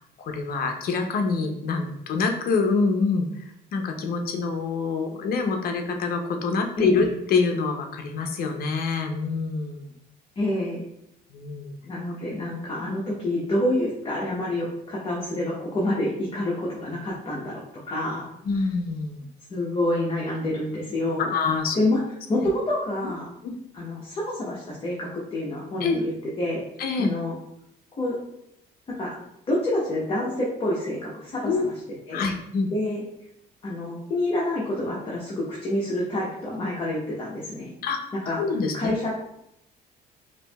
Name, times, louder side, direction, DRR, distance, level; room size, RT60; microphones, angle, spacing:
voice 1, 0.2-9.9 11.3-11.7 18.4-19.2 21.3-21.8 23.4-23.6 25.8-26.0 26.8-27.1 31.4-31.7 32.1-32.7 37.8-38.1 38.4-38.9, left 4 dB, 60° left, 4 dB, 0.6 m, -26 dB
voice 2, 6.8-7.1 10.4-10.8 11.8-17.6 17.9-18.3 19.5-21.3 21.7-22.0 22.3-23.3 23.7-26.1 26.4-26.6 27.0-27.3 28.0-28.2 28.9-29.1 29.5-31.7 32.1-32.3 32.7-33.0 33.6-37.7 38.2-38.4 38.7-39.2, left 1 dB, 30° left, -5 dB, 1.0 m, -27 dB
5.0 x 2.7 x 2.3 m, 0.78 s
cardioid pair, 110°, 17 cm